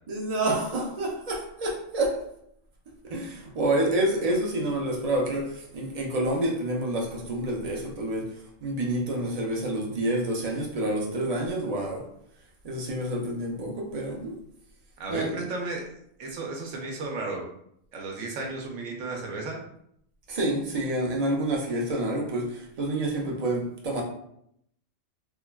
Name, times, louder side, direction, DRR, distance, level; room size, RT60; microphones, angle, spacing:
voice 1, 0.1-2.3 3.0-12.1 12.6-14.3 15.1-15.4 20.3-24.0, right 1 dB, 50° right, -1 dB, 0.4 m, -28 dB
voice 2, 15.0-15.8 16.2-17.4 17.9-19.6, right 3 dB, 85° right, 0 dB, 1.0 m, -34 dB
3.4 x 2.2 x 2.2 m, 0.72 s
omnidirectional pair, 1.3 m